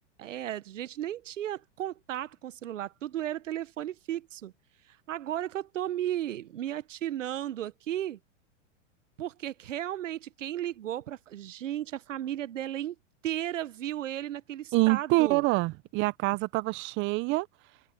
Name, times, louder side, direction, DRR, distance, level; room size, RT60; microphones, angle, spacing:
voice 1, 0.2-4.5 5.1-8.2 9.2-12.9 13.2-15.4, right 12 dB, 85° right, 1.1 m, -34 dB
voice 2, 14.7-17.5, right 22 dB, 30° right, 0.6 m, -26 dB
hypercardioid pair, 125°, 37 cm